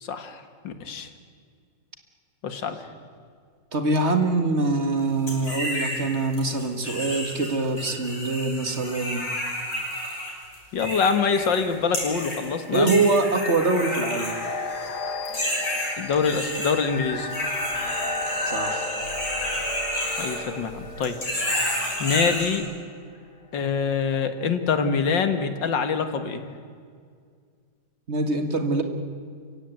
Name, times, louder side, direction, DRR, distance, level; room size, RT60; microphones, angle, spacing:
voice 1, 0.0-1.1 2.4-2.9 10.7-13.0 16.0-17.3 20.2-21.2 22.0-22.6 23.5-26.5, left 5 dB, 90° left, 8 dB, 2.4 m, -25 dB
voice 2, 3.7-9.2 12.7-14.3 18.5-18.9 28.1-28.8, right 3 dB, 40° right, 6 dB, 2.0 m, -24 dB
sound 1, 5.3-6.0 6.3-11.6 11.9-12.4 12.7-14.9 15.3-16.7 17.3-20.7 21.0-22.6, equal, 40° left, 6.7 m, -30 dB
sound 2, 11.9-22.7, left 2 dB, 65° left, 2.4 m, -34 dB
29.5 x 16.5 x 9.2 m, 2.1 s
omnidirectional pair, 1.9 m